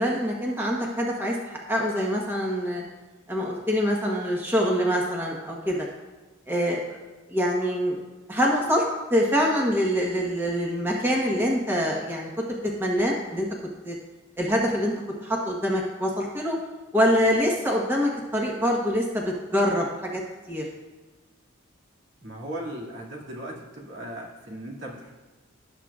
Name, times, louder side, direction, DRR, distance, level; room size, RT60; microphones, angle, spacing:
voice 1, 0.0-2.8 3.3-5.8 6.5-6.8 7.3-8.0 8.3-8.8 9.1-12.3 12.8-13.5 13.8-13.9 14.4-14.9 15.2-16.6 16.9-20.2 20.5-20.6, equal, 10° right, -2 dB, 1.2 m, -25 dB
voice 2, 22.2-25.1, right 1 dB, 65° right, -3 dB, 2.2 m, -37 dB
18.0 x 7.5 x 2.4 m, 1.2 s
head